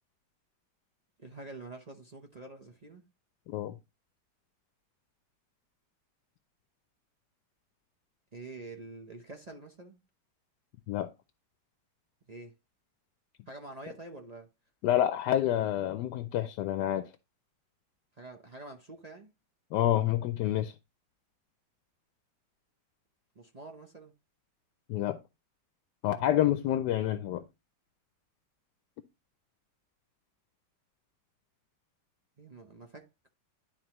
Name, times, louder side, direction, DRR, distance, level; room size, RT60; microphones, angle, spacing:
voice 1, 1.2-3.0 8.3-10.0 12.3-12.5 13.5-14.5 18.2-19.3 23.3-24.1 32.4-33.3, right 2 dB, 40° right, 0.5 m, -47 dB
voice 2, 14.8-17.1 19.7-20.7 24.9-25.2 26.0-27.5, left 12 dB, 80° left, 1.2 m, -28 dB
11.5 x 4.1 x 2.9 m
omnidirectional pair, 1.9 m